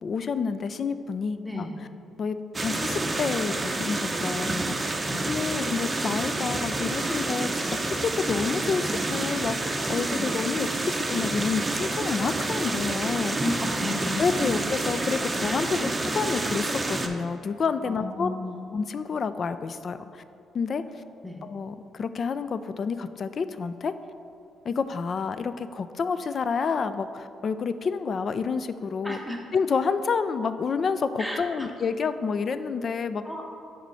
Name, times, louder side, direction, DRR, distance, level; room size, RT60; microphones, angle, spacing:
voice 1, 0.0-1.7 2.2-5.0 5.3-13.4 14.2-15.9 16.1-18.3 18.7-20.2 20.5-20.8 21.4-23.9 24.7-29.2 29.5-33.2, left 5 dB, 50° left, 12 dB, 0.3 m, -29 dB
sound 1, 2.5-17.1, right 2 dB, 20° right, 0.6 m, -29 dB
voice 2, 13.4-14.5 15.4-15.9 17.9-18.5 21.2-21.4 29.0-29.4 31.2-31.7 33.2-33.5, left 1 dB, ahead, 0 dB, 1.0 m, -33 dB
5.9 x 4.2 x 5.6 m, 2.6 s
cardioid pair, 90°, 0 cm